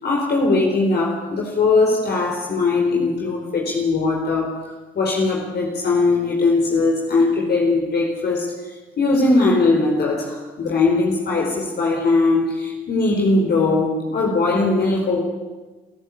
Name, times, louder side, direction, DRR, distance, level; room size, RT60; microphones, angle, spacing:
voice 1, 0.0-8.5 9.0-15.2, left 3 dB, 55° left, 0 dB, 4.4 m, -20 dB
29.0 x 13.0 x 8.4 m, 1.2 s
supercardioid pair, 55°, 20 cm